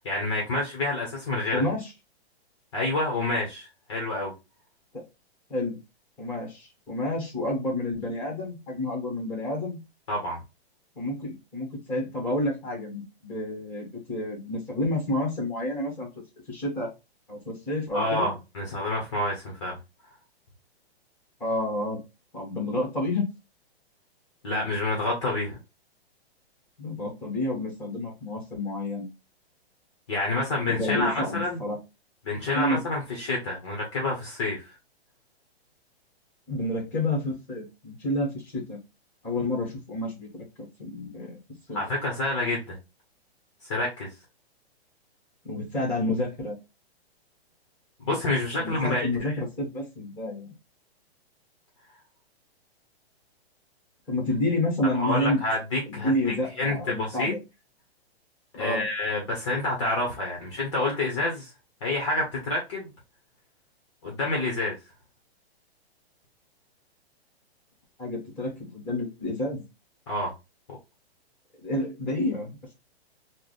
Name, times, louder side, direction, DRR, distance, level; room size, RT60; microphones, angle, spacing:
voice 1, 0.0-1.6 2.7-4.3 10.1-10.4 17.9-19.8 24.4-25.6 30.1-31.6 32.2-34.6 41.7-42.8 43.6-44.1 48.0-49.1 54.9-56.1 56.6-57.3 58.6-61.5 61.8-62.9 64.0-64.7 70.1-70.3, left 2 dB, 30° left, 0.8 m, -28 dB
voice 2, 1.5-1.9 4.9-5.0 5.5-5.8 6.2-9.8 10.9-16.1 16.5-16.9 17.3-18.3 21.4-22.0 22.3-23.2 26.8-29.1 30.7-31.8 32.5-32.8 36.5-38.8 39.2-41.4 41.7-41.8 45.4-46.6 48.6-50.5 54.1-55.4 55.9-57.4 58.6-58.8 68.0-69.6 71.6-72.7, left 1 dB, 5° left, 1.0 m, -29 dB
3.3 x 2.1 x 3.9 m
hypercardioid pair, 175°, 32 cm